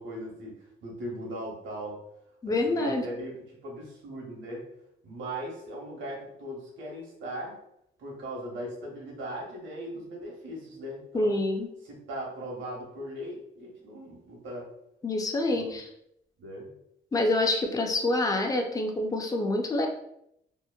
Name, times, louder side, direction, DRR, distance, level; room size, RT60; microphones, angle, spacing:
voice 1, 0.0-2.0 2.5-4.7 5.0-7.6 8.0-11.4 11.8-14.7 15.5-15.8 16.4-16.7, right 1 dB, 70° right, -2 dB, 1.0 m, -39 dB
voice 2, 2.4-3.0 11.1-11.7 15.0-15.9 17.1-19.9, left 2 dB, 20° left, 3 dB, 0.4 m, -26 dB
2.8 x 2.1 x 2.2 m, 0.77 s
cardioid pair, 90°, 20 cm